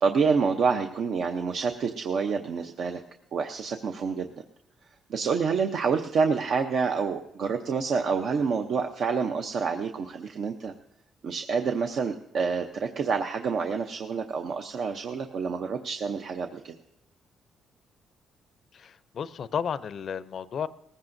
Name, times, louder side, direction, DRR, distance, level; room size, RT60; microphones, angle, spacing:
voice 1, 0.0-3.0 3.3-4.3 5.1-10.7 11.2-16.8, right 5 dB, 65° right, 5 dB, 0.7 m, -27 dB
voice 2, 18.7-20.7, left 7 dB, 60° left, 15 dB, 0.5 m, -33 dB
19.0 x 15.5 x 2.6 m, 0.80 s
cardioid pair, 90°, 0 cm